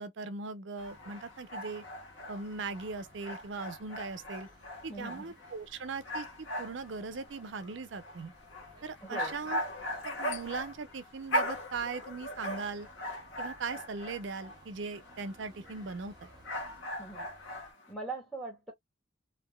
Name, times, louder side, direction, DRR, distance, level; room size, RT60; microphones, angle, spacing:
voice 1, 0.0-1.8 2.3-4.5 4.8-8.3 8.8-9.7 10.0-12.9 13.4-16.3, right 4 dB, 90° right, 0.6 m, -39 dB
sound 1, 0.8-14.6 14.9-17.8, equal, 85° left, 1.2 m, -39 dB
sound 2, 0.8-17.7, right 1 dB, 25° right, 1.0 m, -60 dB
voice 2, 4.9-5.3 9.0-9.3 17.0-17.3 17.9-18.7, right 3 dB, ahead, 1.8 m, -41 dB
3.3 x 2.6 x 2.2 m
head